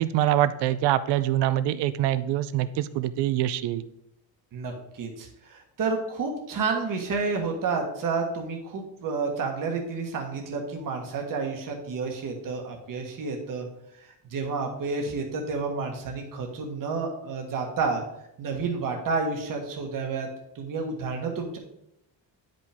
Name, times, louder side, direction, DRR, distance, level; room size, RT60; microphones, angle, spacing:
voice 1, 0.0-3.9, right 12 dB, 70° right, 14 dB, 0.5 m, -24 dB
voice 2, 4.5-13.7 14.3-18.0 18.4-20.3 20.5-21.6, right 4 dB, 50° right, 2 dB, 1.4 m, -30 dB
9.7 x 5.3 x 3.5 m, 0.79 s
cardioid pair, 140°, 42 cm